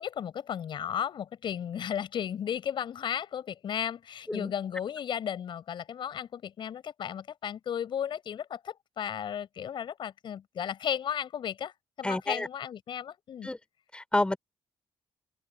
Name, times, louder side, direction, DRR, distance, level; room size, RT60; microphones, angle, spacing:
voice 1, 0.0-13.5, left 9 dB, 60° left, 6.1 m, -34 dB
voice 2, 12.0-12.5 13.4-13.6 13.9-14.4, left 2 dB, 10° left, 5.3 m, -29 dB
open air
cardioid pair, 110°, 9 cm